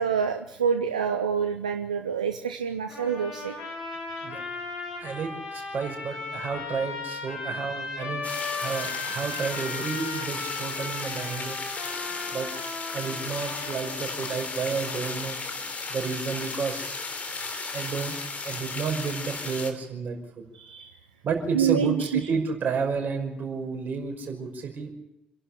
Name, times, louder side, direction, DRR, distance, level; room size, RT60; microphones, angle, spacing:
voice 1, 0.0-3.5 4.4-4.5 20.5-20.9 21.5-22.2, right 7 dB, 85° right, 6 dB, 0.8 m, -27 dB
sound 1, 2.9-14.4, left 3 dB, 70° left, 6.7 m, -36 dB
voice 2, 5.0-8.3 8.6-11.6 12.3-12.5 12.9-15.4 15.9-16.9 17.7-20.2 21.2-24.9, right 5 dB, 50° right, 3 dB, 5.5 m, -31 dB
sound 2, 8.2-19.7, left 4 dB, 40° left, 3.3 m, -35 dB
27.5 x 11.0 x 9.8 m, 0.86 s
figure-of-eight pair, 40°, 4 cm